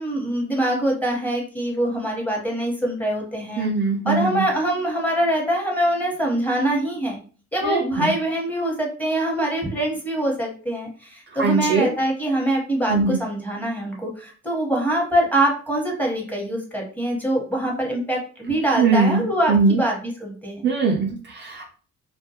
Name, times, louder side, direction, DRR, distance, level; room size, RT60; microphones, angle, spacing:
voice 1, 0.0-3.7 4.1-7.2 7.5-20.7, right 1 dB, 5° left, -2 dB, 0.9 m, -24 dB
voice 2, 3.6-4.4 7.6-8.1 11.4-11.9 12.9-13.2 18.8-19.8 20.6-21.7, right 4 dB, 40° right, 1 dB, 0.4 m, -21 dB
2.2 x 2.1 x 2.7 m, 0.40 s
cardioid pair, 90°, 30 cm